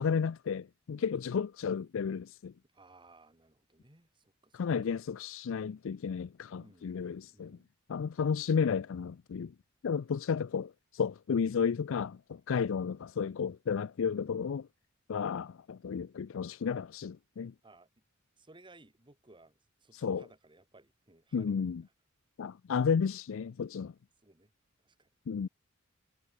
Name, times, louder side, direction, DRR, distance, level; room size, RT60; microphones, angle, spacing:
voice 1, 0.0-2.5 4.5-7.6 7.9-9.5 9.8-14.7 15.1-17.5 19.9-20.2 21.3-21.8 22.4-23.9 25.3-25.5, left 6 dB, 70° left, 0.4 m, -32 dB
voice 2, 0.9-1.5 2.6-5.0 6.5-7.7 12.7-12.9 17.6-17.9 18.4-21.8 24.2-24.5 24.8-25.1, right 2 dB, 25° right, 3.0 m, -60 dB
head